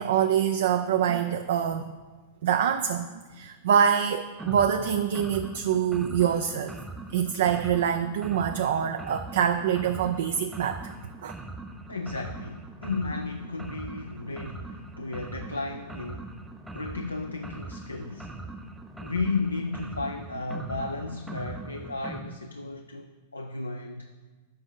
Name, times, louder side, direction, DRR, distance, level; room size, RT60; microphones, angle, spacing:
voice 1, 0.0-2.0 2.4-6.7 7.1-10.9 11.2-11.3, right 8 dB, 65° right, 8 dB, 0.4 m, -25 dB
sound 1, 4.4-22.2, right 2 dB, 5° right, 0.7 m, -41 dB
voice 2, 11.9-16.4 16.7-18.3 19.0-24.1, left 3 dB, 90° left, 6 dB, 0.4 m, -34 dB
7.6 x 5.3 x 7.2 m, 1.4 s
figure-of-eight pair, 95°, 0 cm